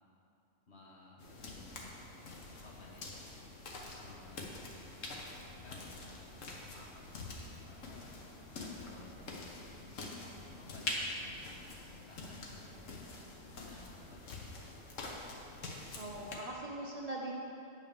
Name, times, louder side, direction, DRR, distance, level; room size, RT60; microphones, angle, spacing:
voice 1, 0.7-3.1 3.9-8.2 8.6-13.1 13.6-14.9 15.5-15.9, left 2 dB, 60° left, -2 dB, 1.5 m, -57 dB
sound 1, 1.2-16.4, left 2 dB, 85° left, 1.5 m, -45 dB
voice 2, 15.7-17.3, right 1 dB, 35° right, -3 dB, 0.7 m, -42 dB
8.7 x 5.9 x 6.4 m, 2.8 s
omnidirectional pair, 1.3 m